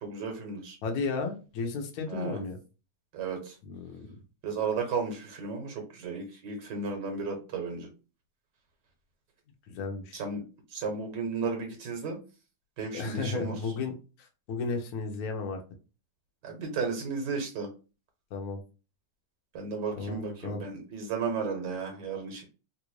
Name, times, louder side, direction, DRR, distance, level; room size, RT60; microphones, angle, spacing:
voice 1, 0.0-0.8 2.1-2.4 3.1-3.6 4.4-7.9 10.1-10.4 10.7-12.2 12.8-13.5 16.4-17.7 19.5-22.4, right 5 dB, 75° right, 3 dB, 1.5 m, -34 dB
voice 2, 0.8-2.6 3.6-4.1 9.7-10.2 12.9-13.9 14.2-15.6 18.3-18.6 20.0-20.6, left 4 dB, 65° left, 4 dB, 1.2 m, -34 dB
3.4 x 2.5 x 3.1 m, 0.32 s
omnidirectional pair, 1.9 m